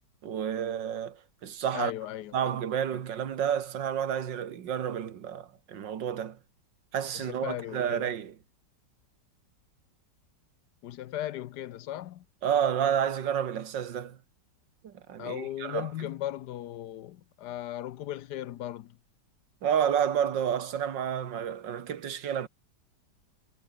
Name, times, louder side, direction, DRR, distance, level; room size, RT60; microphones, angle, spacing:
voice 1, 0.2-1.9 2.3-6.4 6.9-8.4 12.4-14.2 14.8-15.9 19.6-22.5, right 9 dB, 90° right, 2.1 m, -30 dB
voice 2, 1.7-2.5 2.9-3.0 7.1-8.1 10.8-12.2 15.2-19.0, left 13 dB, 70° left, 1.2 m, -37 dB
omnidirectional pair, 1.9 m